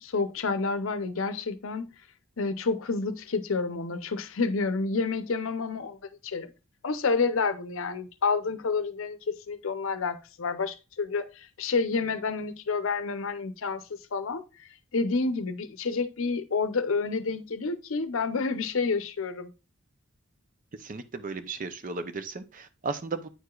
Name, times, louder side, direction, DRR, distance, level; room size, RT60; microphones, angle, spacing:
voice 1, 0.0-1.9 2.4-6.0 6.2-6.5 6.8-9.2 9.5-19.5, left 4 dB, 75° left, 0.6 m, -29 dB
voice 2, 20.8-23.3, right 4 dB, 40° right, 0.5 m, -35 dB
9.0 x 4.8 x 2.3 m
head